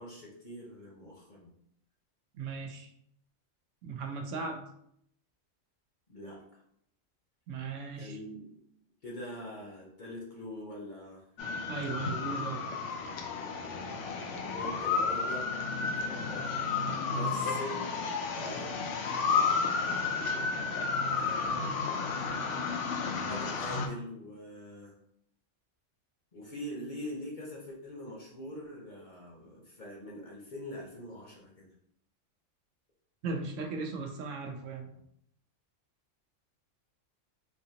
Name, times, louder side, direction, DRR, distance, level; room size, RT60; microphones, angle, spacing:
voice 1, 0.0-1.5 6.1-6.6 8.0-8.6 9.0-11.2 14.4-15.5 15.9-16.7 17.1-17.9 18.2-18.8 21.1-21.9 23.1-24.9 26.3-31.7, left 1 dB, 45° left, -2 dB, 0.8 m, -43 dB
voice 2, 2.3-2.9 3.8-4.6 7.5-8.2 11.7-12.6 21.2-21.7 22.3-22.6 33.2-34.9, right 4 dB, 80° right, 3 dB, 1.0 m, -38 dB
sound 1, 11.4-23.9, left 4 dB, 75° left, 0.9 m, -32 dB
3.5 x 2.7 x 2.8 m, 0.71 s
omnidirectional pair, 1.3 m